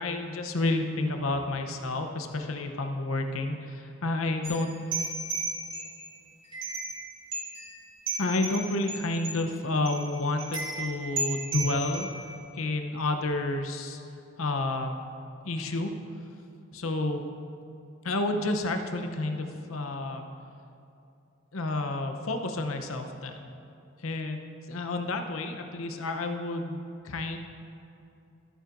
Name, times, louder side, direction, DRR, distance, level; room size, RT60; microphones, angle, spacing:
voice 1, 0.0-4.7 8.2-12.1 12.5-14.0 14.4-15.0 15.4-15.9 16.7-17.2 18.0-20.2 21.5-23.3 24.0-24.4 24.7-27.4, left 2 dB, 80° left, 5 dB, 0.8 m, -30 dB
sound 1, 4.4-6.1 6.5-7.1 7.3-9.4 9.8-10.0 10.4-12.3, right 3 dB, 25° right, 2.4 m, -34 dB
14.0 x 9.1 x 2.6 m, 2.7 s
head